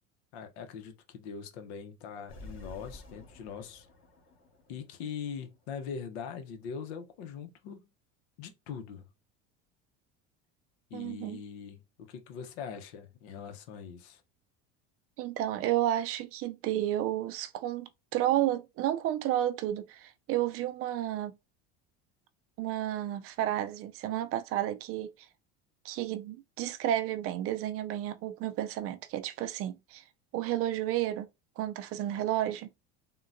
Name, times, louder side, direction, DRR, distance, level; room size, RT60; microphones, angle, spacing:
voice 1, 0.3-3.9 4.7-7.9 8.4-9.1 10.9-14.2, left 6 dB, 85° left, 0.8 m, -42 dB
sound 1, 2.3-5.7, left 2 dB, 40° left, 1.2 m, -51 dB
voice 2, 10.9-11.4 15.2-21.3 22.6-25.1 25.8-30.0 30.3-31.3 31.6-32.7, right 12 dB, 45° right, 0.4 m, -31 dB
3.7 x 2.2 x 2.5 m
supercardioid pair, 125°, 31 cm